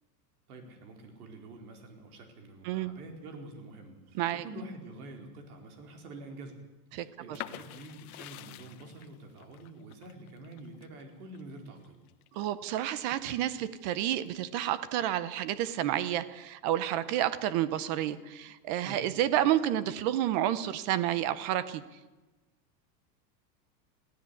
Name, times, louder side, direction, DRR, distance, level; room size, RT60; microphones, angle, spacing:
voice 1, 0.5-6.6 6.9-12.0 18.8-19.0, right 2 dB, 60° right, 4 dB, 4.6 m, -47 dB
sound 1, 7.3-13.0 13.4-14.3, left 14 dB, 60° left, 1.2 m, -47 dB
voice 2, 12.3-21.8, right 12 dB, 25° right, 15 dB, 0.6 m, -30 dB
21.5 x 15.5 x 8.4 m, 1.1 s
supercardioid pair, 180°, 49 cm